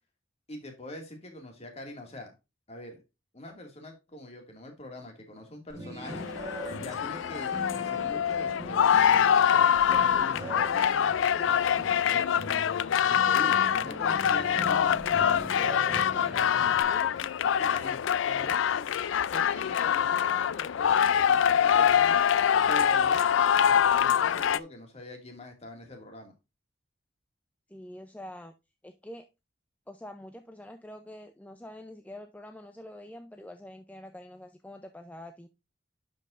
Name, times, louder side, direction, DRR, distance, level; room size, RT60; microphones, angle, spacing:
voice 1, 0.5-2.3 2.7-3.0 3.3-6.3 6.7-9.4 9.9-12.3 13.0-17.1 17.6-18.8 19.2-22.2 22.7-26.3, left 1 dB, 35° left, 3 dB, 2.1 m, -43 dB
sound 1, 5.7-16.8, equal, 20° right, 1.8 m, -41 dB
sound 2, 6.1-24.6, left 8 dB, 80° left, 0.4 m, -24 dB
voice 2, 27.7-28.5 28.8-29.2 29.9-35.5, left 1 dB, 10° left, 7 dB, 0.5 m, -45 dB
11.0 x 5.3 x 2.5 m, 0.25 s
head